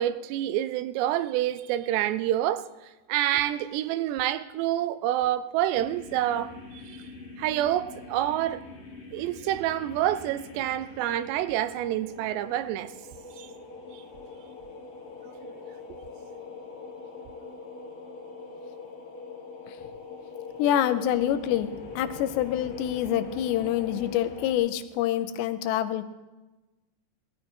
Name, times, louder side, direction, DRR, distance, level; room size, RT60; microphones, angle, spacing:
voice 1, 0.0-2.7 3.1-7.0 7.4-8.6 9.1-12.9 13.4-13.5, right 12 dB, 85° right, 2.7 m, -27 dB
sound 1, 5.7-24.5, left 4 dB, 40° left, 2.9 m, -43 dB
voice 2, 20.6-26.0, left 11 dB, 85° left, 2.8 m, -26 dB
18.0 x 13.0 x 4.4 m
omnidirectional pair, 4.9 m